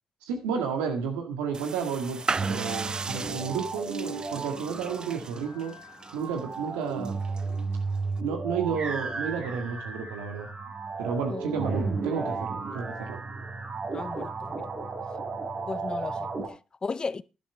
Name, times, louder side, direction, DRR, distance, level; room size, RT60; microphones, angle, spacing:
voice 1, 0.3-5.7 6.1-7.2 8.2-10.5 11.0-13.2, right 6 dB, 90° right, 1.8 m, -32 dB
sound 1, 1.5-8.2, right 4 dB, 40° right, 0.5 m, -37 dB
sound 2, 2.4-16.5, right 4 dB, 55° right, 3.4 m, -34 dB
voice 2, 13.9-14.6 15.7-17.2, left 4 dB, 40° left, 0.6 m, -35 dB
11.5 x 11.0 x 3.3 m
hypercardioid pair, 40°, 2 cm